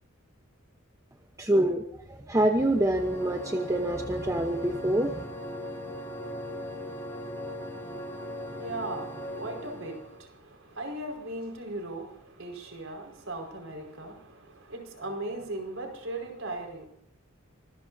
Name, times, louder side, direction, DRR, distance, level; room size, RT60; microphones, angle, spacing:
voice 1, 1.4-1.8 2.1-5.2, right 1 dB, 15° right, 0.9 m, -26 dB
sound 1, 2.4-10.2, equal, 10° left, 6.2 m, -39 dB
voice 2, 8.1-16.9, right 2 dB, 65° right, 5.1 m, -38 dB
25.0 x 20.5 x 2.7 m
head